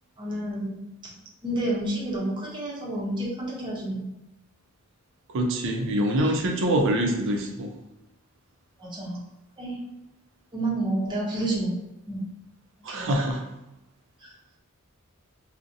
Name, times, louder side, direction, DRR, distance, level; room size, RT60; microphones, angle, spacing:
voice 1, 0.2-1.2 1.4-4.0 8.8-9.2 9.6-9.8 10.5-11.7 12.1-12.2 12.9-13.2 14.2-14.3, right 1 dB, 20° right, -4 dB, 0.6 m, -30 dB
voice 2, 5.3-7.7 12.8-13.4, right 1 dB, 60° right, 3 dB, 0.4 m, -25 dB
2.5 x 2.0 x 2.6 m, 0.94 s
head